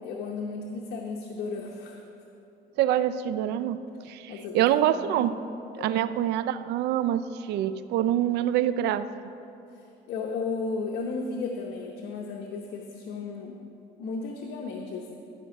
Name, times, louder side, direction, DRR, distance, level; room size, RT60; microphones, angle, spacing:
voice 1, 0.0-2.0 4.3-4.7 5.0-5.4 5.8-5.9 9.7-13.6 14.0-15.1, left 4 dB, 75° left, 0 dB, 0.9 m, -34 dB
voice 2, 2.8-5.3 5.8-9.1, right 11 dB, 80° right, 13 dB, 0.4 m, -26 dB
12.0 x 5.2 x 5.9 m, 2.7 s
cardioid pair, 110°, 17 cm